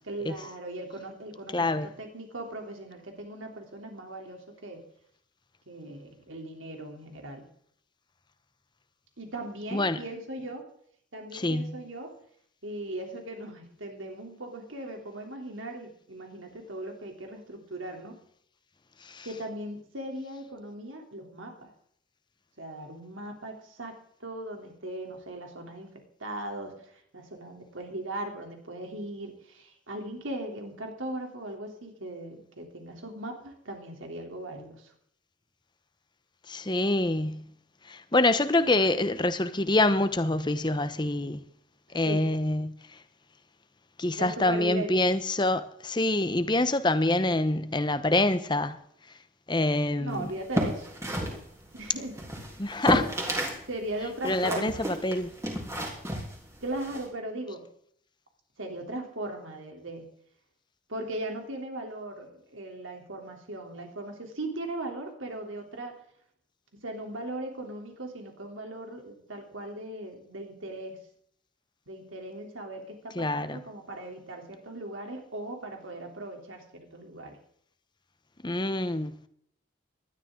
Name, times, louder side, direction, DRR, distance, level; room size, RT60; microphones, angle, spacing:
voice 1, 0.0-4.8 5.7-7.4 9.2-10.7 11.1-12.1 12.6-18.2 19.2-21.7 22.6-34.9 41.9-42.3 44.2-45.1 50.0-50.9 51.7-52.2 53.7-54.9 56.6-57.6 58.6-60.0 60.9-66.0 66.8-71.0 71.9-77.4, right 1 dB, 85° right, 3.3 m, -38 dB
voice 2, 1.5-1.9 9.7-10.0 11.3-11.7 19.0-19.3 36.5-37.4 37.9-41.4 41.9-42.7 44.0-48.8 49.5-50.3 52.6-53.2 54.2-55.3 73.2-73.6 78.4-79.1, left 2 dB, 25° left, 0.9 m, -26 dB
sound 1, 50.3-53.6 53.9-57.0, equal, 15° right, 3.2 m, -32 dB
19.0 x 12.5 x 3.8 m
head